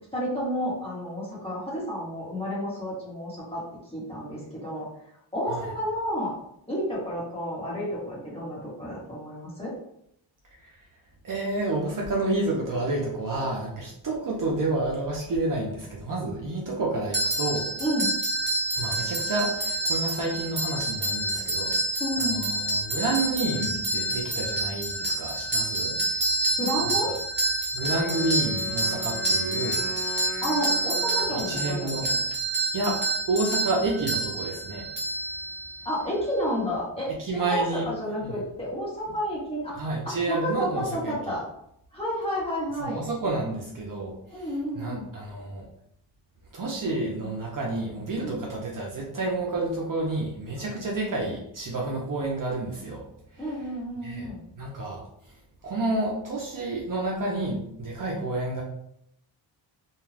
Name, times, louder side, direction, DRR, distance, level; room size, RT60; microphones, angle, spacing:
voice 1, 0.1-3.6 3.9-4.9 5.3-6.3 6.7-9.7 17.8-18.1 22.0-22.5 26.6-27.1 30.4-32.2 35.8-41.4 41.9-43.0 44.3-45.1 48.2-48.5 53.4-54.5, equal, 10° left, -7 dB, 1.1 m, -31 dB
voice 2, 11.2-17.7 18.7-21.8 22.2-26.3 26.8-27.1 27.7-30.3 31.3-32.1 32.7-33.0 33.3-34.9 37.2-37.9 38.2-38.4 39.8-41.1 42.8-45.7 46.5-53.0 53.3-53.5 54.0-58.6, right 2 dB, 45° right, -2 dB, 0.6 m, -30 dB
sound 1, 17.1-35.9, right 1 dB, 25° right, 1.0 m, -28 dB
Wind instrument woodwind instrument, 27.8-31.8, equal, 50° left, 0.6 m, -39 dB
2.4 x 2.2 x 3.2 m, 0.76 s
wide cardioid pair, 120°, 45 cm